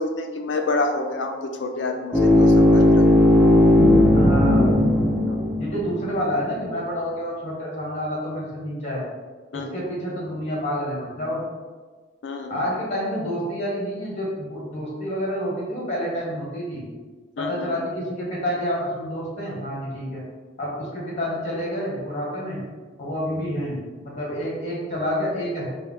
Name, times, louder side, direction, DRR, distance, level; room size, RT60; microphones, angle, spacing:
voice 1, 0.0-3.0 5.3-5.4 9.5-9.8 12.2-12.6 17.4-17.7 23.4-23.5, left 2 dB, 70° left, 4 dB, 0.5 m, -28 dB
sound 1, 2.1-6.1, left 1 dB, 10° right, 0.9 m, -16 dB
voice 2, 4.1-4.8 5.6-9.0 9.5-11.4 12.5-16.8 17.4-20.2 20.6-22.6 23.0-25.7, equal, 40° left, -5 dB, 1.4 m, -28 dB
4.4 x 2.2 x 3.6 m, 1.3 s
head